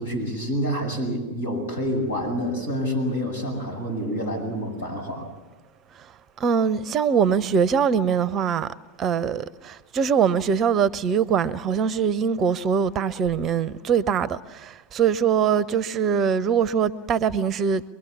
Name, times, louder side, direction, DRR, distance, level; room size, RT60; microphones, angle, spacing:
voice 1, 0.0-5.3, equal, 70° left, 7.7 m, -27 dB
voice 2, 6.4-8.7 9.0-17.8, right 7 dB, 30° right, 0.7 m, -22 dB
24.5 x 22.0 x 7.3 m
figure-of-eight pair, 90°, 0 cm